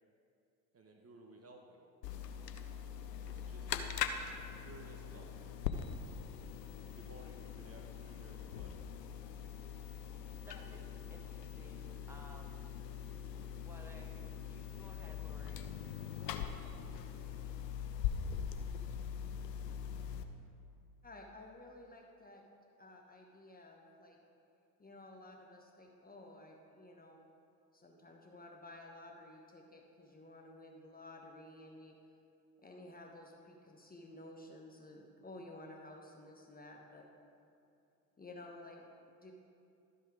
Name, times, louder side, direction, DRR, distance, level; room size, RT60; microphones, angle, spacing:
voice 1, 0.7-1.8 3.2-4.0 4.6-5.4 6.9-8.8, right 2 dB, 30° right, 2 dB, 1.1 m, -57 dB
sound 1, 2.0-20.2, left 8 dB, 85° left, 0.6 m, -42 dB
voice 2, 9.5-10.0 10.4-12.7 13.3-17.5, right 1 dB, 5° right, 1 dB, 1.3 m, -59 dB
voice 3, 21.0-22.4 22.8-24.2 24.8-27.2 27.7-32.0 32.6-37.1 38.2-39.3, left 2 dB, 20° left, 1 dB, 1.2 m, -53 dB
12.5 x 5.6 x 5.0 m, 2.5 s
figure-of-eight pair, 60°, 49 cm